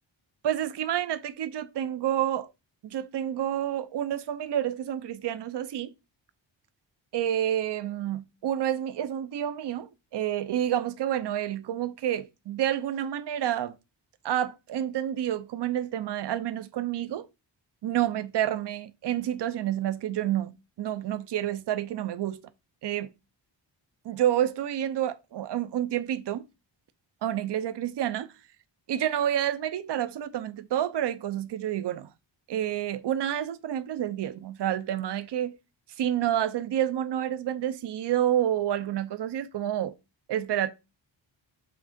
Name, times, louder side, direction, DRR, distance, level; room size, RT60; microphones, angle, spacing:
voice 1, 0.4-2.5 2.8-5.9 7.1-13.7 14.2-17.3 17.8-22.5 22.8-23.1 24.0-26.4 27.2-28.3 28.9-32.1 32.5-35.6 36.0-40.0 40.3-40.7, right 11 dB, 60° right, 0.7 m, -29 dB
5.8 x 3.6 x 5.1 m
wide cardioid pair, 145°, 46 cm